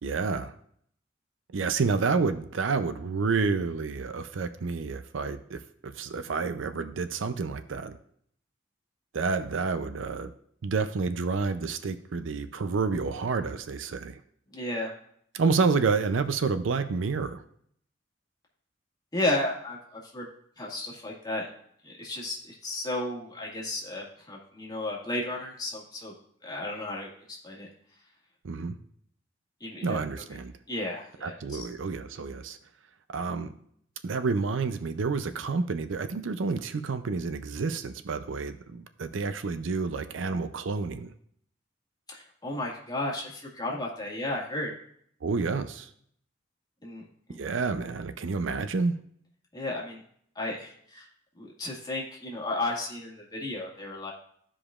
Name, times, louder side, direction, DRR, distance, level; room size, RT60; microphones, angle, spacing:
voice 1, 0.0-0.5 1.5-8.0 9.1-10.3 10.6-14.2 15.3-17.4 28.4-28.8 29.8-30.5 31.2-32.6 33.1-33.5 34.0-41.1 45.2-45.9 47.4-48.9, right 4 dB, 80° right, 10 dB, 0.5 m, -29 dB
voice 2, 14.5-14.9 19.1-20.3 20.6-21.5 21.8-26.1 26.4-27.1 27.4-27.7 29.6-30.0 30.7-31.7 42.1-44.7 46.8-47.0 47.3-47.4 49.5-50.0 50.4-51.1 51.4-54.1, left 2 dB, 20° left, -3 dB, 1.8 m, -33 dB
14.5 x 5.0 x 2.4 m, 0.65 s
head